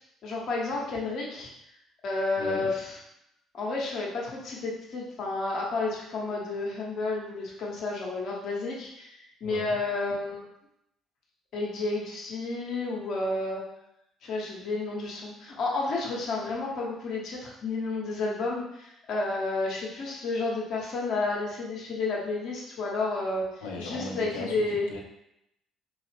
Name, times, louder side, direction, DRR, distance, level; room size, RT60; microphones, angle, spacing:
voice 1, 0.2-1.5 2.0-3.0 3.5-10.4 11.5-13.6 14.2-24.9, left 3 dB, 50° left, -3 dB, 1.0 m, -31 dB
voice 2, 2.4-2.7 9.4-9.8 23.6-25.0, left 3 dB, 75° left, -1 dB, 0.6 m, -38 dB
3.9 x 2.4 x 3.3 m, 0.81 s
figure-of-eight pair, 50°, 0 cm